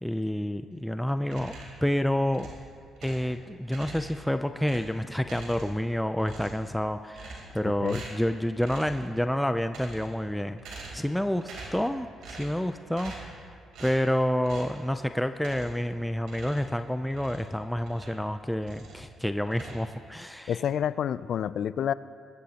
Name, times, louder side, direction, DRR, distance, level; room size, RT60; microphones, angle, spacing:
voice 1, 0.0-2.5 3.0-13.1 13.4-13.5 13.8-20.6, equal, 5° left, 8 dB, 0.4 m, -29 dB
sound 1, 1.2-1.9 2.3-3.3 3.7-4.3 4.6-5.9 6.2-6.7 7.1-7.6 7.8-8.3 8.6-9.0 9.6-10.2 10.6-11.1 11.4-11.9 12.2-12.6 12.9-13.4 13.7-14.0 14.4-14.8 15.4-15.9 16.2-18.3 18.6-19.1 19.4-20.3, right 3 dB, 90° right, 3.4 m, -44 dB
voice 2, 20.5-21.9, left 9 dB, 65° left, 17 dB, 0.4 m, -28 dB
21.5 x 13.5 x 2.9 m, 2.1 s
cardioid pair, 90°, 0 cm